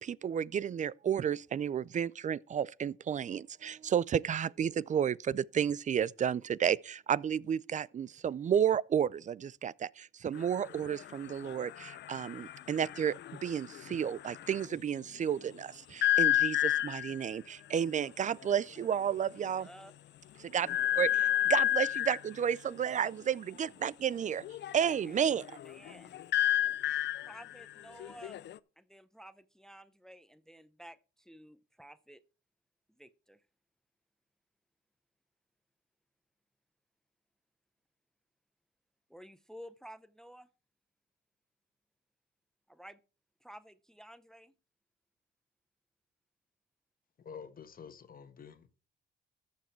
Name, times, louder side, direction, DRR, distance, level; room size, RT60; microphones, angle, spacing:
voice 1, 0.0-19.7 20.4-24.4 24.7-25.4, right 8 dB, 40° right, 0.4 m, -32 dB
sound 1, 10.3-14.7 16.0-17.2 18.4-18.5 18.8-19.0 19.4-19.5 20.6-22.3 24.4-28.6, left 12 dB, 60° left, 0.6 m, -31 dB
voice 2, 19.6-19.9 25.1-26.1 27.3-28.4 28.8-32.2 33.0-33.4 39.1-40.5 42.7-43.0 43.4-44.5, equal, 5° left, 0.6 m, -52 dB
voice 3, 47.2-48.7, left 6 dB, 45° left, 1.4 m, -48 dB
13.5 x 7.2 x 4.5 m
cardioid pair, 90°, 20 cm